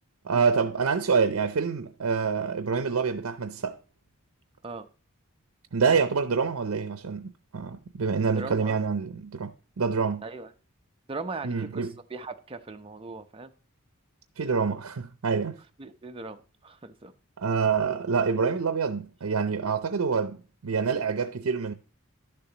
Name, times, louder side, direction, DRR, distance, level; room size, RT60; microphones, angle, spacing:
voice 1, 0.2-3.8 5.7-9.5 9.8-10.2 11.4-11.9 14.4-15.6 17.4-20.4 20.6-21.7, right 5 dB, 85° right, 0.6 m, -26 dB
voice 2, 8.3-8.8 10.2-10.5 11.1-13.5 15.8-17.1, right 3 dB, 25° right, 0.7 m, -39 dB
11.5 x 6.9 x 2.9 m
head